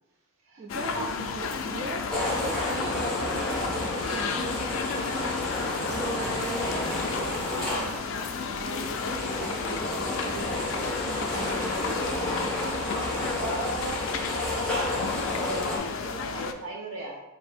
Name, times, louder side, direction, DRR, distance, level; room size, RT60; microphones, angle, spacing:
voice 1, 0.6-2.0 2.4-4.6 5.1-5.4 5.9-12.5, right 2 dB, 45° right, -1 dB, 0.3 m, -39 dB
sound 1, 0.7-16.5, left 5 dB, 65° left, 0.3 m, -33 dB
sound 2, 2.1-15.8, left 1 dB, 5° left, 0.8 m, -31 dB
voice 2, 13.0-17.2, right 1 dB, 70° right, -1 dB, 0.9 m, -37 dB
4.2 x 2.6 x 3.4 m, 1.0 s
head